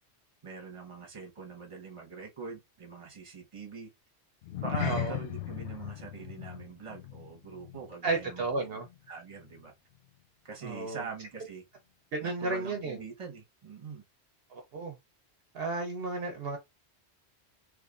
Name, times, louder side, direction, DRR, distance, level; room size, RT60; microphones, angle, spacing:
voice 1, 0.4-3.9 4.6-8.5 9.1-9.7 10.4-11.6 12.2-14.0, right 5 dB, 30° right, 1.0 m, -43 dB
sound 1, 4.4-9.1 9.3-9.6 10.1-10.2, left 12 dB, 85° left, 0.9 m, -38 dB
voice 2, 8.0-8.9 10.6-11.0 12.1-13.0 14.5-15.0 15.5-16.6, right 3 dB, 65° right, 0.8 m, -33 dB
3.3 x 3.2 x 2.4 m
omnidirectional pair, 1.1 m